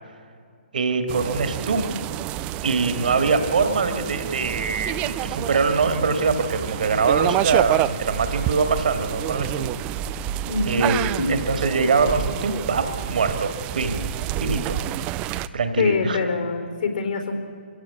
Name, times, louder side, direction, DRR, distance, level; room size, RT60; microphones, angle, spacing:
voice 1, 0.7-2.0 2.6-9.7 10.6-14.0 14.4-14.8 15.5-16.2, right 4 dB, 55° right, 9 dB, 2.4 m, -23 dB
sound 1, 1.1-15.5, right 13 dB, 20° right, 0.5 m, -28 dB
voice 2, 10.5-10.9 15.8-17.3, left 4 dB, 50° left, 6 dB, 4.2 m, -24 dB
25.0 x 16.5 x 8.5 m, 2.2 s
figure-of-eight pair, 135°, 6 cm